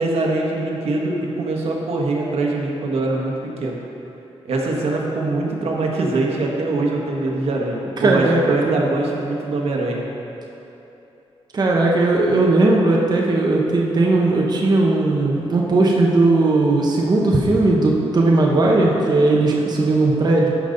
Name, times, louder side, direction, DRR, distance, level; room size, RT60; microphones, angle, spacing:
voice 1, 0.0-3.8 4.4-10.0, right 2 dB, 75° right, -1 dB, 1.3 m, -23 dB
voice 2, 8.0-8.8 11.5-20.5, right 2 dB, 40° right, -2 dB, 1.0 m, -17 dB
13.0 x 5.3 x 3.9 m, 2.9 s
wide cardioid pair, 115°, 10 cm